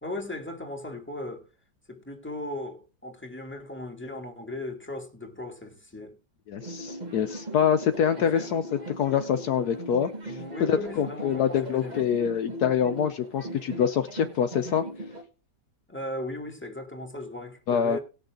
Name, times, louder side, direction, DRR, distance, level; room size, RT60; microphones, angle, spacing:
voice 1, 0.0-1.5 1.9-6.2 8.2-8.5 10.2-12.1 15.9-18.0, left 1 dB, 5° left, 2.4 m, -37 dB
voice 2, 6.5-8.6 9.0-14.8 17.7-18.0, left 8 dB, 70° left, 1.2 m, -25 dB
sound 1, 6.6-15.2, right 1 dB, 25° right, 1.7 m, -39 dB
19.0 x 6.5 x 3.7 m
omnidirectional pair, 1.8 m